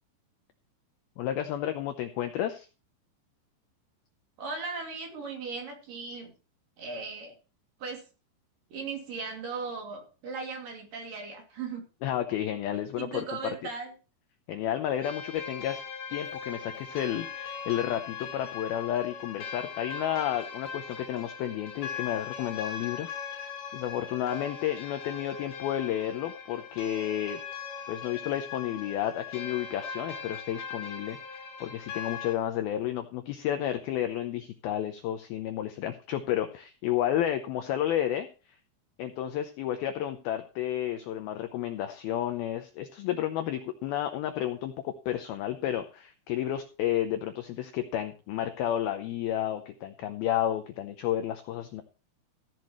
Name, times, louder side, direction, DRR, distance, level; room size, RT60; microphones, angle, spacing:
voice 1, 1.2-2.7 12.0-13.5 14.5-15.8 16.1-23.1 23.7-27.4 27.9-31.2 31.6-38.3 39.0-51.8, left 11 dB, 90° left, 7 dB, 2.1 m, -31 dB
voice 2, 4.4-6.3 6.8-7.3 7.8-8.0 8.7-11.8 12.9-13.9, right 4 dB, 50° right, 2 dB, 3.9 m, -37 dB
sound 1, 15.0-32.4, left 6 dB, 55° left, 4.2 m, -40 dB
15.0 x 10.5 x 3.1 m, 0.34 s
omnidirectional pair, 5.4 m